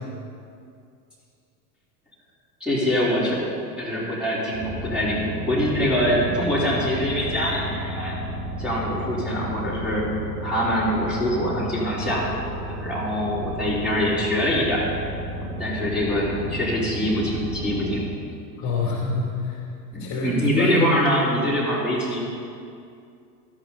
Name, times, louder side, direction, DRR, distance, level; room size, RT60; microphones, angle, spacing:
voice 1, 2.6-3.4 3.8-8.2 8.6-12.2 12.7-15.0 15.4-18.1 19.9-22.2, equal, ahead, -9 dB, 4.0 m, -24 dB
sound 1, 4.5-18.1, right 1 dB, 45° right, 2.4 m, -33 dB
voice 2, 18.6-19.6 19.9-21.0, left 3 dB, 35° left, -2 dB, 2.5 m, -27 dB
17.0 x 13.5 x 4.1 m, 2.4 s
figure-of-eight pair, 80°, 49 cm